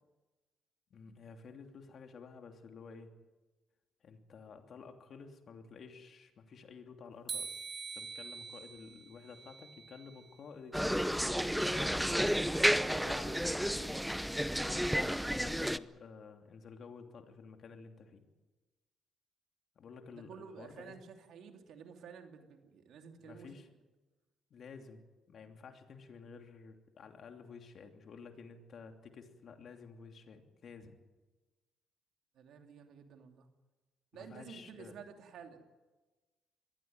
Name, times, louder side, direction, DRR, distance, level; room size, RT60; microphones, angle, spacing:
voice 1, 0.9-3.1 4.0-7.5 7.9-12.4 13.0-13.3 14.6-18.3 19.7-20.9 23.2-23.7 24.5-31.0 34.1-34.9, left 5 dB, 55° left, 5 dB, 2.9 m, -52 dB
sound 1, 7.3-10.4, right 5 dB, 45° right, 2.1 m, -45 dB
sound 2, 10.7-15.8, equal, ahead, 0.7 m, -31 dB
voice 2, 12.4-14.0 20.1-23.5 32.3-33.5 34.1-35.6, right 6 dB, 75° right, 4 dB, 2.9 m, -52 dB
22.0 x 15.5 x 9.5 m, 1.2 s
cardioid pair, 90°, 0 cm